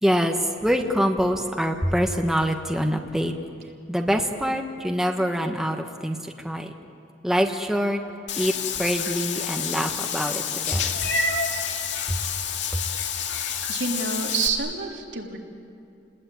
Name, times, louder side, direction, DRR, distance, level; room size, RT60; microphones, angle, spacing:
voice 1, 0.0-3.3 3.9-6.7 7.2-8.0 8.4-10.9 12.1-12.2 12.7-12.8, equal, ahead, 3 dB, 1.3 m, -25 dB
Meow / Water / Bathtub (filling or washing), 8.3-14.5, left 6 dB, 70° left, 2.3 m, -28 dB
voice 2, 13.7-15.4, right 4 dB, 70° right, -1 dB, 3.6 m, -28 dB
30.0 x 20.5 x 9.4 m, 2.5 s
head